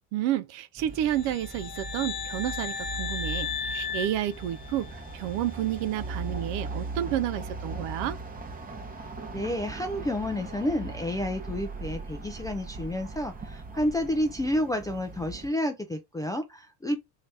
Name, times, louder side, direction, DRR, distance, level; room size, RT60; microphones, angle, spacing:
voice 1, 0.1-8.2, right 12 dB, 60° right, 0.6 m, -30 dB
sound 1, 0.8-15.5, right 3 dB, 20° right, 0.8 m, -39 dB
sound 2, 1.1-5.1, left 6 dB, 90° left, 0.8 m, -35 dB
voice 2, 9.3-17.0, left 1 dB, 10° left, 0.3 m, -30 dB
3.2 x 2.8 x 3.2 m
hypercardioid pair, 80°, 47 cm